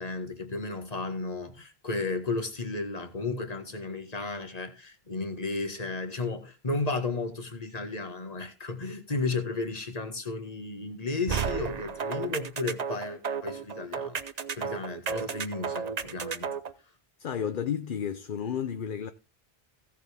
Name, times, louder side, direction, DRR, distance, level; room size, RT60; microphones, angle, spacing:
voice 1, 0.0-14.2 14.5-16.5, left 3 dB, 40° left, 1.6 m, -33 dB
sound 1, 11.3-16.7, right 6 dB, 45° right, 0.8 m, -33 dB
voice 2, 17.2-19.1, left 8 dB, 55° left, 0.8 m, -32 dB
16.0 x 7.4 x 3.4 m
omnidirectional pair, 1.1 m